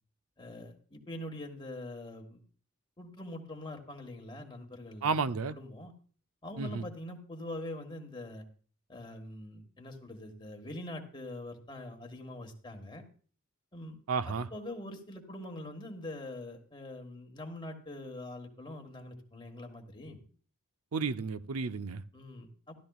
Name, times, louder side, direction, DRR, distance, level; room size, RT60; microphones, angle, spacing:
voice 1, 0.4-2.4 3.0-5.9 6.4-8.4 8.9-13.0 13.7-14.0 14.2-20.2 22.1-22.8, left 1 dB, 20° left, 1.6 m, -44 dB
voice 2, 5.0-5.6 6.6-6.8 14.1-14.5 20.9-22.0, right 4 dB, 75° right, 0.6 m, -32 dB
14.0 x 12.5 x 2.4 m
head